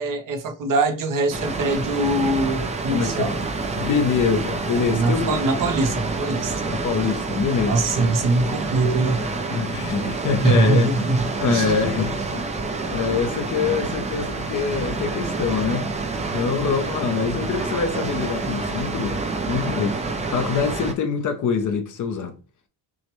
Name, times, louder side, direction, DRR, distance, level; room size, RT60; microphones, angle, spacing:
voice 1, 0.0-3.3 4.9-6.5 7.7-9.3 10.4-11.7, right 2 dB, 45° right, 0.7 m, -22 dB
Water, 1.3-20.9, right 3 dB, 15° right, 0.3 m, -28 dB
voice 2, 2.9-3.3 3.7-5.4 6.6-7.9 9.5-11.1 11.4-12.5 12.9-15.9 16.3-22.3, left 6 dB, 40° left, 0.6 m, -24 dB
6.2 x 2.1 x 3.0 m
cardioid pair, 160°, 46 cm